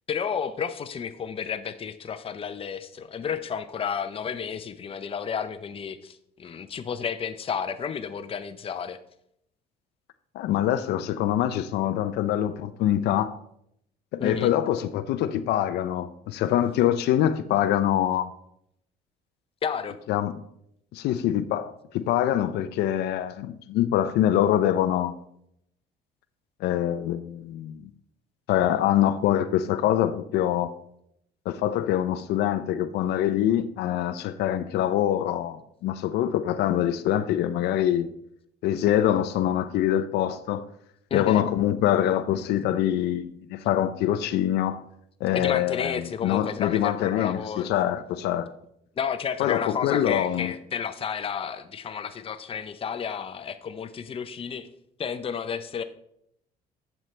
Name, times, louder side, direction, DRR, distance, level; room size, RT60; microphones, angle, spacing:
voice 1, 0.1-9.0 14.2-14.5 19.6-20.0 41.1-41.4 45.3-47.7 49.0-54.7 55.0-55.8, left 7 dB, 35° left, 0.7 m, -31 dB
voice 2, 10.3-13.3 14.1-18.3 20.1-20.3 20.9-25.2 26.6-27.8 28.5-30.7 31.5-38.1 38.6-40.6 41.1-44.8 45.2-48.5 49.4-50.5, left 11 dB, 80° left, 0.5 m, -24 dB
10.5 x 7.3 x 3.2 m
cardioid pair, 110°, 17 cm